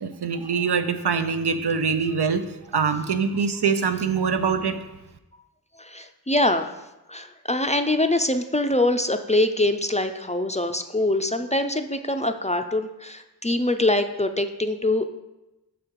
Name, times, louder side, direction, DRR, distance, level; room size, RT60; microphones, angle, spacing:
voice 1, 0.0-2.4 2.7-4.7, right 6 dB, 85° right, 9 dB, 0.6 m, -23 dB
voice 2, 5.8-6.7 7.1-15.1, left 1 dB, 20° left, 7 dB, 0.4 m, -24 dB
6.4 x 5.0 x 4.6 m, 0.98 s
wide cardioid pair, 50°, 39 cm